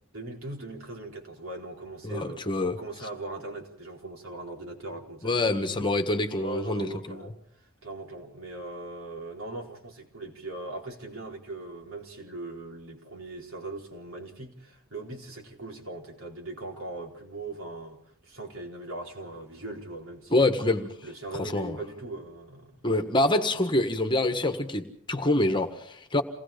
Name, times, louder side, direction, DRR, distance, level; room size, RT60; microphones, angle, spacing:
voice 1, 0.1-5.9 6.4-20.6 21.0-22.8, right 2 dB, 75° right, 4.3 m, -40 dB
voice 2, 2.0-2.8 5.2-7.3 20.3-20.9 21.4-21.8 22.8-26.2, left 2 dB, 20° left, 1.5 m, -26 dB
28.0 x 18.5 x 5.2 m
head